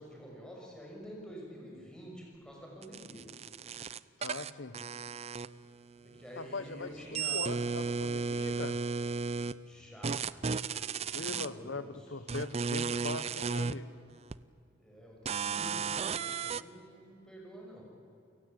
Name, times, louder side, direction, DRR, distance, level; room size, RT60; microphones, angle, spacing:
voice 1, 0.0-3.3 6.0-8.4 9.6-12.2 14.8-17.8, equal, 5° left, -2 dB, 6.3 m, -49 dB
sound 1, 2.8-5.9 6.2-9.5 10.0-11.5 12.3-13.7 14.3-14.4 15.3-16.6, right 5 dB, 35° right, 0.5 m, -34 dB
voice 2, 4.2-4.8 6.4-8.8 11.1-13.9, left 3 dB, 90° left, 13 dB, 1.3 m, -41 dB
29.5 x 17.0 x 8.6 m, 2.5 s
head